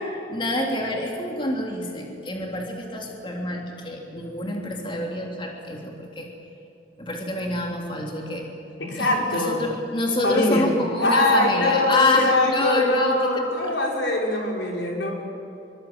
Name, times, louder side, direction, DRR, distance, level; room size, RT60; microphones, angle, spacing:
voice 1, 0.3-6.3 7.0-8.5 9.0-13.7, left 2 dB, 30° left, 0 dB, 3.4 m, -27 dB
voice 2, 8.8-9.7 10.2-10.7 11.0-15.1, left 1 dB, 80° left, -1 dB, 5.7 m, -22 dB
25.0 x 24.5 x 9.0 m, 2.7 s
head